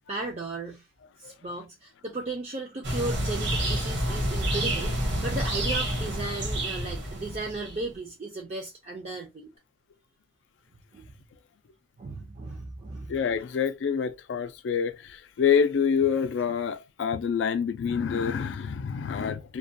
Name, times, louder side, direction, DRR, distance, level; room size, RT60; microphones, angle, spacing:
voice 1, 0.1-0.9 1.2-9.5 10.9-11.1 12.0-13.1, right 2 dB, 35° right, 0.4 m, -35 dB
sound 1, 2.8-7.8, right 1 dB, 70° right, 1.0 m, -28 dB
voice 2, 13.1-19.6, left 7 dB, 75° left, 0.3 m, -27 dB
2.2 x 2.1 x 2.6 m
head